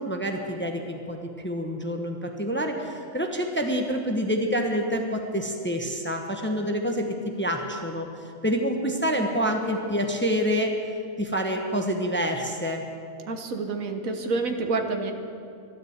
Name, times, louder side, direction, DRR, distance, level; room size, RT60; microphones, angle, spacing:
voice 1, 0.0-10.7 11.2-12.8, equal, 10° left, 3 dB, 1.0 m, -27 dB
voice 2, 13.3-15.1, right 3 dB, 80° right, 6 dB, 1.5 m, -28 dB
13.0 x 11.5 x 8.0 m, 2.4 s
omnidirectional pair, 1.4 m